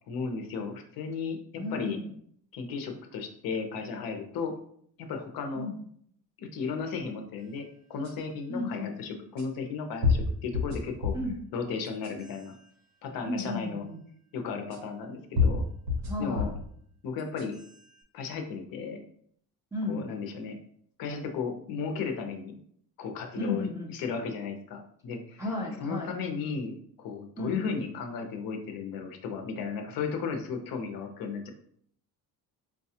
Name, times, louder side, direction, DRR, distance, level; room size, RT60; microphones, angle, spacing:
voice 1, 0.1-2.0 2.5-4.5 5.0-5.7 6.4-11.2 11.5-12.5 13.0-13.8 14.3-15.6 16.2-16.5 17.0-17.6 18.1-19.0 19.9-20.6 21.0-22.6 23.0-23.7 23.9-25.4 25.8-31.5, left 5 dB, 60° left, 4 dB, 0.6 m, -35 dB
voice 2, 1.6-2.1 5.6-5.8 8.5-8.9 11.1-11.3 13.2-14.0 16.1-16.6 19.7-20.0 23.4-23.9 25.4-26.2 27.4-27.7, left 2 dB, 10° right, -4 dB, 0.3 m, -33 dB
sound 1, 8.0-8.1 9.4-9.5 10.0-11.3 11.9-12.4 13.4-13.5 14.7-14.8 15.4-16.7 17.2-17.7, left 4 dB, 60° right, 1.1 m, -28 dB
4.7 x 2.3 x 2.7 m, 0.65 s
cardioid pair, 165°, 39 cm